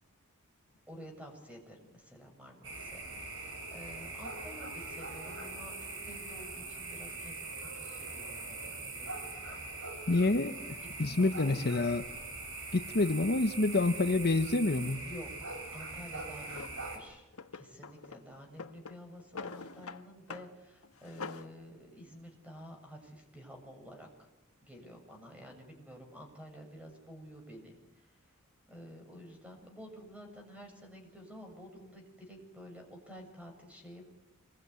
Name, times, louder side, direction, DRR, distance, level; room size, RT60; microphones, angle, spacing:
voice 1, 0.9-9.6 11.0-11.7 15.0-24.3 24.6-28.3 28.7-34.1, equal, 5° right, 3 dB, 7.1 m, -51 dB
sound 1, 2.6-17.0, right 3 dB, 65° right, 7.0 m, -42 dB
voice 2, 10.1-12.0 12.7-15.1, left 2 dB, 45° left, 8 dB, 1.0 m, -28 dB
Drawer open or close, 16.5-16.8 17.3-18.2 18.5-20.0 20.3-20.5 20.8-21.5, left 4 dB, 75° left, 1.5 m, -44 dB
26.5 x 22.0 x 9.6 m, 0.98 s
head